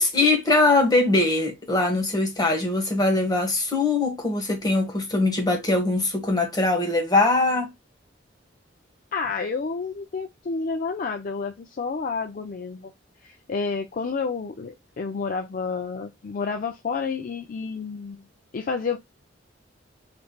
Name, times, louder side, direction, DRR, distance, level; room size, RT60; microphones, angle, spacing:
voice 1, 0.0-7.7, left 2 dB, 20° left, 1.3 m, -22 dB
voice 2, 9.1-12.9 13.2-18.2 18.5-19.0, left 4 dB, 45° left, 0.4 m, -30 dB
3.4 x 3.1 x 2.3 m
head